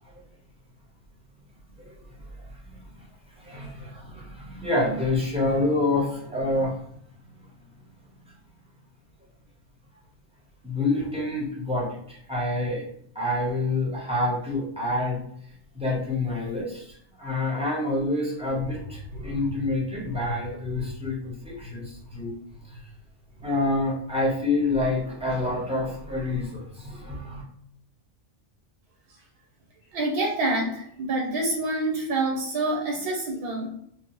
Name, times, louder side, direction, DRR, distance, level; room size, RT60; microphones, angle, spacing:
voice 1, 1.8-2.3 3.4-6.8 10.6-12.8 13.1-15.2 15.7-22.3 22.7-22.8 23.4-27.4, left 2 dB, 5° right, -4 dB, 0.5 m, -27 dB
voice 2, 29.9-33.7, right 2 dB, 60° right, 0 dB, 0.6 m, -27 dB
2.7 x 2.0 x 2.9 m, 0.69 s
omnidirectional pair, 1.3 m